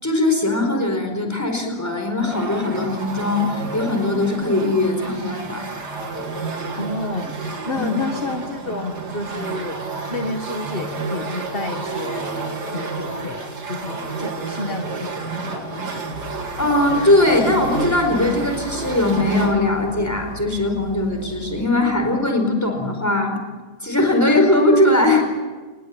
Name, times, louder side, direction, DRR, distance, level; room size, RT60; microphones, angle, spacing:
voice 1, 0.0-5.6 7.8-7.9 16.6-23.4 23.8-25.2, left 2 dB, 10° left, 4 dB, 4.6 m, -20 dB
sound 1, 2.2-19.5, right 4 dB, 80° right, 3.6 m, -30 dB
voice 2, 6.8-9.8 10.1-12.3 12.7-16.2, left 2 dB, 35° left, 6 dB, 1.7 m, -30 dB
sound 2, 16.1-21.7, left 2 dB, 45° right, 6.5 m, -37 dB
28.0 x 21.0 x 8.6 m, 1.4 s
omnidirectional pair, 1.8 m